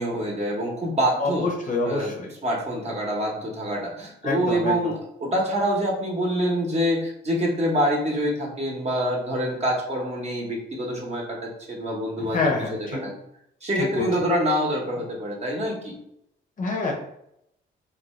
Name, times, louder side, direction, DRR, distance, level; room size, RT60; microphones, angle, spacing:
voice 1, 0.0-1.5 1.8-2.1 2.4-11.4 11.7-12.4 13.0-13.1 13.6-16.0, equal, 35° right, -1 dB, 0.8 m, -26 dB
voice 2, 1.2-2.3 4.2-4.8 12.2-13.1 13.8-14.3 16.6-16.9, left 3 dB, 40° left, 0 dB, 0.7 m, -27 dB
2.5 x 2.2 x 3.1 m, 0.77 s
cardioid pair, 90°, 20 cm